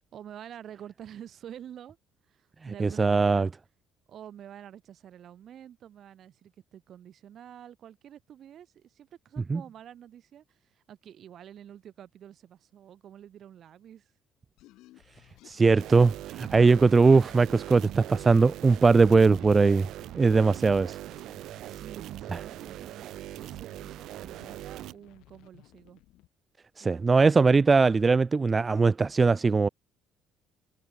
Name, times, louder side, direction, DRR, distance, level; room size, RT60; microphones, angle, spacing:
voice 1, 0.1-2.0 2.3-3.5 4.1-14.1 21.7-26.0 26.8-27.2, right 10 dB, 50° right, 4.6 m, -48 dB
voice 2, 2.8-3.5 9.5-9.6 15.4-19.9 20.1-21.0 22.3-22.4 26.8-29.7, right 4 dB, 20° right, 0.4 m, -21 dB
sound 1, 14.6-26.3, left 17 dB, 80° left, 4.5 m, -58 dB
sound 2, 15.8-24.9, right 14 dB, 65° right, 1.6 m, -41 dB
cardioid pair, 145°, 0 cm